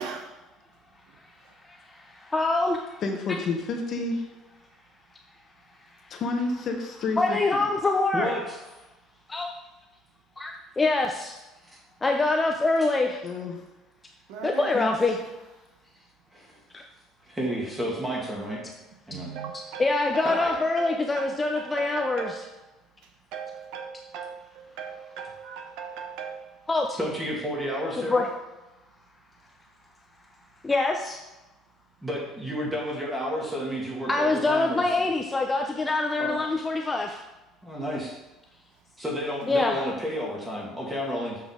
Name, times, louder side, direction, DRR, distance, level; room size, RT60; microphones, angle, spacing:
voice 1, 0.0-0.3 14.3-14.7 19.1-20.4 20.8-22.5 23.3-26.5, right 6 dB, 75° right, 5 dB, 1.0 m, -38 dB
voice 2, 2.1-3.0 7.2-8.3 9.3-9.5 10.4-11.3 12.0-13.2 14.4-15.2 16.7-16.8 19.8-22.4 26.7-27.0 28.0-28.3 30.6-31.2 34.1-37.2 39.5-39.8, left 3 dB, 15° left, 2 dB, 0.5 m, -25 dB
voice 3, 3.0-4.3 6.1-7.7 13.2-13.6 14.7-14.9, left 3 dB, 40° left, 4 dB, 1.0 m, -29 dB
voice 4, 17.3-18.6 19.1-19.3 20.2-20.5 27.0-28.3 32.0-35.1 36.2-36.4 37.6-38.2 39.0-41.4, equal, 10° right, -3 dB, 1.9 m, -31 dB
7.1 x 5.9 x 3.6 m, 1.0 s
cardioid pair, 155°, 0 cm